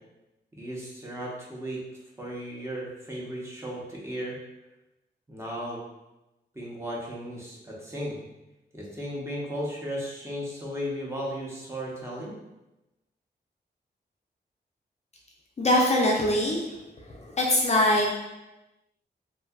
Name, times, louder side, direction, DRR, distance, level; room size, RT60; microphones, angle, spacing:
voice 1, 0.6-1.8 2.2-4.4 5.3-5.8 6.5-8.2 8.7-12.4, equal, 15° right, -5 dB, 0.7 m, -35 dB
voice 2, 15.6-18.1, left 1 dB, 40° left, -2 dB, 0.4 m, -23 dB
2.6 x 2.3 x 2.3 m, 0.98 s
cardioid pair, 80°, 18 cm